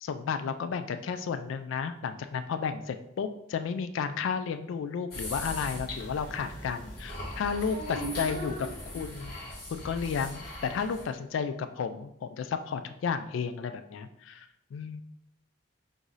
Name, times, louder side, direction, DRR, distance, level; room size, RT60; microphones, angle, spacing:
voice 1, 0.0-7.8 8.2-8.5 8.9-9.3 9.7-15.0, left 6 dB, 75° left, 9 dB, 0.3 m, -33 dB
sound 1, 5.1-11.0, left 1 dB, 50° left, 1.7 m, -40 dB
voice 2, 7.7-8.7, right 2 dB, 55° right, 2 dB, 0.8 m, -37 dB
3.9 x 2.6 x 4.7 m, 0.79 s
head